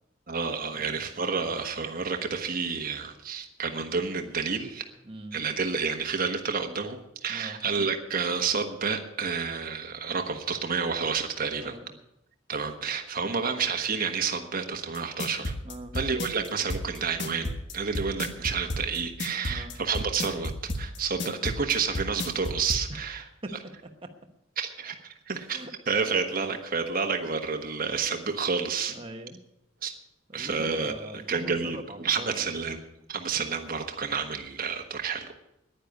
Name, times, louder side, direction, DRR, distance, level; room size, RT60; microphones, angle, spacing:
voice 1, 0.3-4.9 5.3-11.7 12.5-15.5 15.9-23.2 24.6-25.0 25.3-28.9 29.8-29.9 30.3-30.9 31.3-32.8 33.1-35.3, right 5 dB, 50° right, 4 dB, 1.3 m, -30 dB
voice 2, 5.1-5.4 7.3-7.6 11.6-11.9 13.2-13.5 15.6-16.0 19.5-19.8 22.9-23.0 23.4-23.6 24.0-24.1 25.5-25.7 28.9-29.4 30.3-32.4, right 1 dB, 30° right, 3 dB, 1.2 m, -41 dB
sound 1, 14.9-22.8, left 1 dB, 60° left, 1.5 m, -32 dB
10.5 x 10.0 x 9.3 m, 0.86 s
head